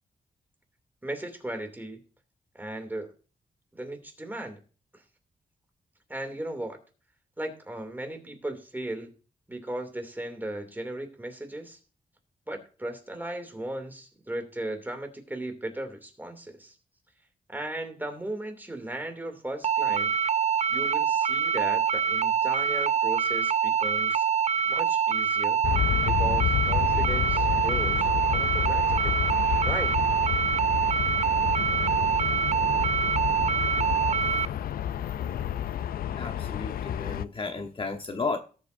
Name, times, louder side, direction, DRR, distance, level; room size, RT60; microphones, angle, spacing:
voice 1, 1.0-2.0 2.5-3.1 3.7-4.6 4.9-5.0 6.1-6.8 7.4-9.1 9.5-11.8 12.5-16.7 17.5-20.1 20.7-24.3 24.6-25.6 26.0-29.3 29.6-29.9, right 1 dB, 10° right, 5 dB, 2.6 m, -36 dB
sound 1, 19.6-34.5, right 7 dB, 50° right, 0.4 m, -25 dB
Aircraft, 25.6-37.3, left 10 dB, 85° left, 0.4 m, -29 dB
voice 2, 36.1-38.4, left 4 dB, 35° left, 5 dB, 1.1 m, -33 dB
18.5 x 7.5 x 2.6 m, 0.37 s
wide cardioid pair, 105°, 15 cm